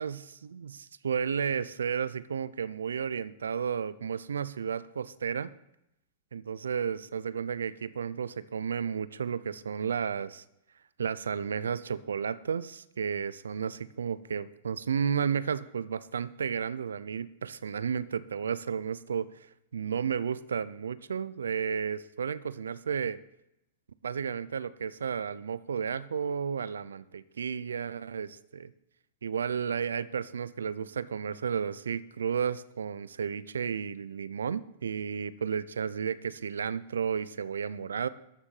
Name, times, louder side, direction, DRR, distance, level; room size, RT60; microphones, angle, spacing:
voice 1, 0.0-5.5 6.3-10.4 11.0-19.5 19.7-23.2 24.0-28.7 29.2-38.1, right 7 dB, 80° right, 17 dB, 0.6 m, -33 dB
13.0 x 7.2 x 5.6 m, 0.84 s
hypercardioid pair, 110°, 0 cm